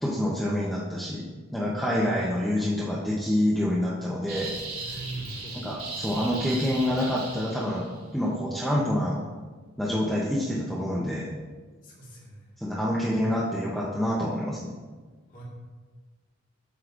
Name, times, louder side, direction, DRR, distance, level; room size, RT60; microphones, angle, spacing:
voice 1, 0.0-4.5 4.8-5.0 5.5-9.2 9.8-11.3 12.6-14.7, left 1 dB, ahead, -6 dB, 0.7 m, -27 dB
sound 1, 4.3-8.0, right 3 dB, 80° right, 1.4 m, -37 dB
voice 2, 4.7-5.6 11.8-12.3 15.3-15.4, right 2 dB, 40° left, -4 dB, 1.7 m, -41 dB
7.8 x 6.4 x 2.5 m, 1.4 s
head